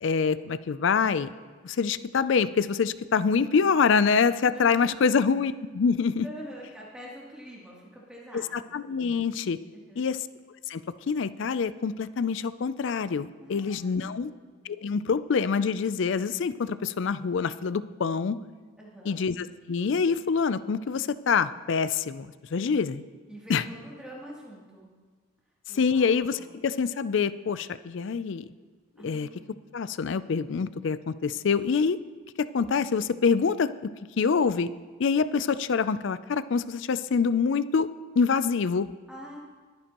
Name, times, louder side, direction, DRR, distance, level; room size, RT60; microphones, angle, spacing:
voice 1, 0.0-1.3 1.6-6.3 8.3-9.6 10.0-10.3 10.7-14.3 14.6-18.4 19.1-23.0 23.5-23.6 25.7-28.4 29.0-29.3 29.7-32.0 32.4-33.9 34.2-34.7 35.0-37.9 38.2-38.9, left 5 dB, 65° left, 15 dB, 0.4 m, -26 dB
voice 2, 4.5-4.9 6.2-8.7 9.7-10.1 13.4-14.3 18.8-19.2 23.3-24.9 25.7-26.5 29.0-29.5 39.1-39.4, equal, 5° right, -6 dB, 2.7 m, -45 dB
21.0 x 9.6 x 3.0 m, 1.4 s
head